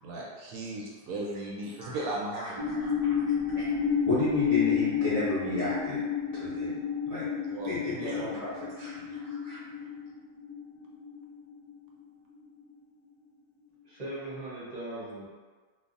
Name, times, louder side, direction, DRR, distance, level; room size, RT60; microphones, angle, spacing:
voice 1, 0.0-2.6 3.5-3.7 7.5-8.7 9.0-9.1, right 2 dB, 70° right, -3 dB, 1.0 m, -37 dB
sound 1, 2.6-11.7, left 7 dB, 5° left, 0.9 m, -30 dB
voice 2, 2.8-3.2 3.6-3.7 4.0-6.0 6.3-6.8 7.0-7.3 7.6-9.6, left 2 dB, 45° left, -11 dB, 0.4 m, -33 dB
voice 3, 13.8-15.3, right 1 dB, 35° right, -8 dB, 0.7 m, -39 dB
3.2 x 2.1 x 2.5 m, 1.4 s
omnidirectional pair, 1.6 m